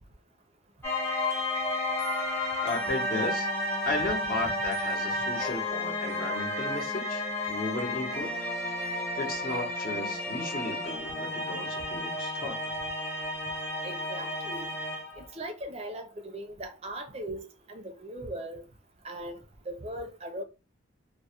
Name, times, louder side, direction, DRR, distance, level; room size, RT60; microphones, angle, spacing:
sound 1, 0.8-15.3, left 1 dB, 15° left, 0.8 m, -32 dB
voice 1, 2.6-3.5 3.8-8.3 9.2-12.6, left 2 dB, 50° left, 0.7 m, -35 dB
voice 2, 13.8-14.7 15.2-18.6 19.0-20.4, right 1 dB, 30° right, 0.4 m, -39 dB
2.2 x 2.0 x 2.8 m
head